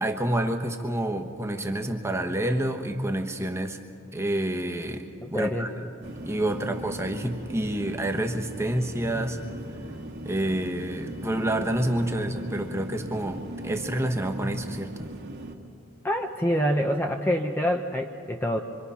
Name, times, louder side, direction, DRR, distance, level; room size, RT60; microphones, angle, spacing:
voice 1, 0.0-3.8 4.1-5.0 5.3-5.7 6.2-9.4 10.2-15.1, right 1 dB, 15° right, 5 dB, 1.2 m, -28 dB
voice 2, 5.2-5.9 16.0-18.6, equal, 10° left, 2 dB, 0.7 m, -26 dB
sound 1, 6.0-15.6, right 1 dB, 55° right, 1.8 m, -39 dB
25.5 x 25.0 x 5.7 m, 2.6 s
head